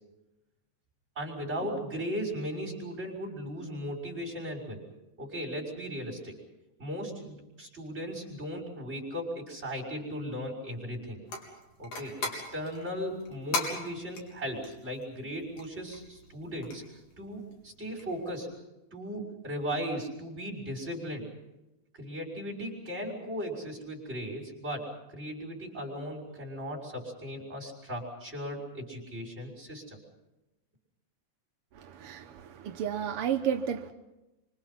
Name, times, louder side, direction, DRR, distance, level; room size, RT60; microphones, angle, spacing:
voice 1, 1.2-4.8 5.2-6.4 6.8-11.2 11.8-16.8 17.2-18.5 18.9-21.3 22.0-30.0, equal, 20° right, -4 dB, 6.0 m, -37 dB
sound 1, 11.3-18.4, left 3 dB, 65° left, 5.2 m, -40 dB
voice 2, 31.7-33.9, right 8 dB, 70° right, 5 dB, 1.3 m, -32 dB
26.0 x 25.5 x 5.9 m, 0.97 s
omnidirectional pair, 3.7 m